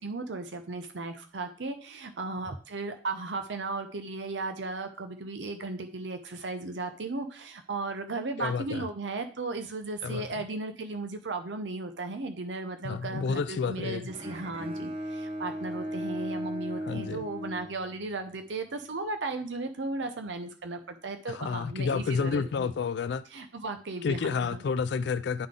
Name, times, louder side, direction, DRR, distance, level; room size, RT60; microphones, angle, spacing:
voice 1, 0.0-22.7 23.3-24.6, right 3 dB, 85° right, 0.8 m, -36 dB
voice 2, 8.4-8.9 10.0-10.5 12.8-14.1 16.8-17.3 21.3-23.2 24.0-25.5, left 5 dB, 70° left, 0.4 m, -30 dB
Bowed string instrument, 14.1-18.3, equal, 35° right, 0.9 m, -37 dB
10.5 x 3.8 x 3.7 m
head